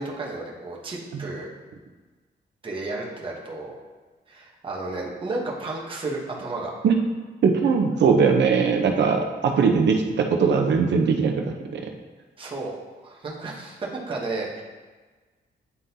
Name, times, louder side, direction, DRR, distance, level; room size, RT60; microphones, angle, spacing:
voice 1, 0.0-1.5 2.6-3.8 4.3-6.7 12.4-14.6, right 2 dB, 30° right, -4 dB, 1.0 m, -32 dB
voice 2, 7.4-11.9, right 5 dB, 75° right, 3 dB, 0.8 m, -20 dB
9.3 x 3.8 x 2.8 m, 1.3 s
wide cardioid pair, 130°, 18 cm